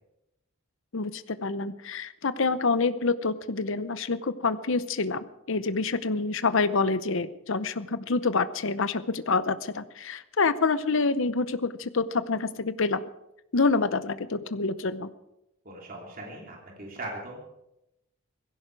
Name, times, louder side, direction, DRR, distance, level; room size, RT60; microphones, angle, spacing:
voice 1, 0.9-13.0 13.5-15.1, left 4 dB, 60° left, 14 dB, 0.8 m, -27 dB
voice 2, 15.6-17.4, right 1 dB, 40° right, -1 dB, 3.1 m, -39 dB
17.5 x 16.0 x 4.7 m, 0.88 s
head